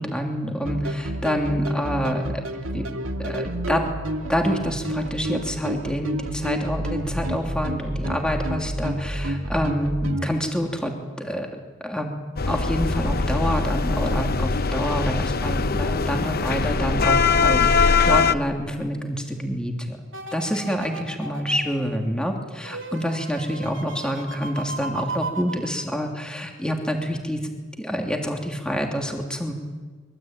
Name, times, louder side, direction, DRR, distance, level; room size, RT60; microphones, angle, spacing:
voice 1, 0.0-2.9 3.2-3.9 4.3-11.5 11.8-12.1 12.5-20.0 20.3-27.4 27.8-29.5, equal, 5° left, 2 dB, 2.9 m, -27 dB
sound 1, 0.7-10.3, right 1 dB, 85° right, 2.2 m, -29 dB
sound 2, 12.4-18.3, left 4 dB, 50° left, 0.8 m, -21 dB
sound 3, 20.1-26.4 26.8-26.9, right 3 dB, 65° right, 2.8 m, -36 dB
24.5 x 23.0 x 9.0 m, 1.4 s
head